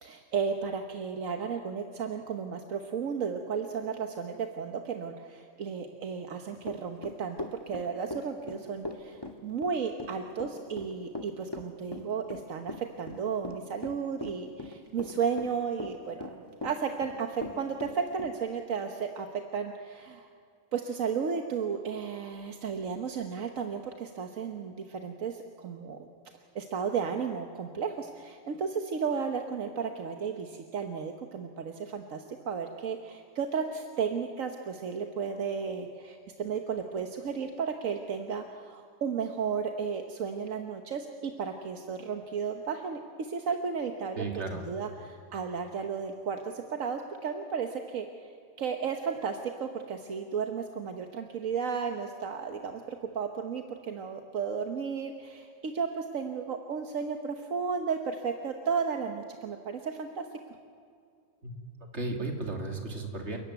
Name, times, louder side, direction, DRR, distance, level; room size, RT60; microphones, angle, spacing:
voice 1, 0.0-7.4 7.7-20.3 20.7-26.1 26.5-44.2 44.5-48.3 48.6-60.3, right 6 dB, 80° right, 5 dB, 1.5 m, -34 dB
Run / Walk footsteps, 6.6-18.3, left 2 dB, 20° left, 1.6 m, -39 dB
voice 2, 44.2-44.7 61.4-61.6 61.9-63.4, right 2 dB, 60° right, 3 dB, 2.9 m, -34 dB
29.5 x 14.0 x 9.2 m, 2.3 s
omnidirectional pair, 1.4 m